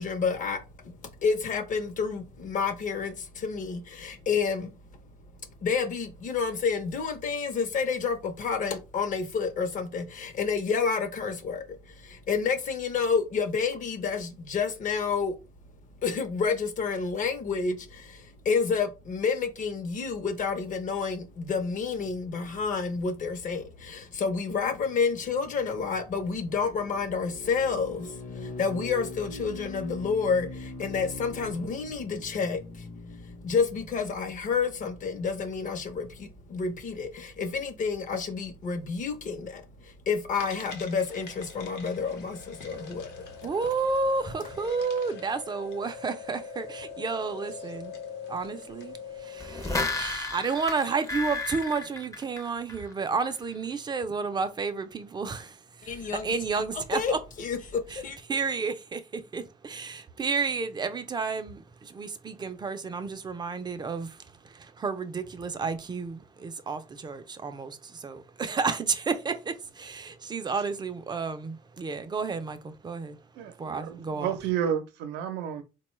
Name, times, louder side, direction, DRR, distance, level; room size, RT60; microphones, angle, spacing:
voice 1, 0.0-4.7 5.6-15.3 16.0-43.2 55.8-58.2, left 5 dB, 50° left, 0.7 m, -29 dB
sound 1, 40.3-49.9, left 5 dB, 85° left, 0.9 m, -43 dB
voice 2, 43.4-47.9 48.3-57.2 57.9-58.0 58.3-74.3, right 4 dB, 25° right, 0.4 m, -31 dB
sound 2, 49.4-52.9 53.3-53.4, left 3 dB, 20° left, 0.6 m, -33 dB
voice 3, 73.3-75.6, right 9 dB, 85° right, 0.6 m, -31 dB
3.8 x 2.2 x 3.0 m
cardioid pair, 110°, 17 cm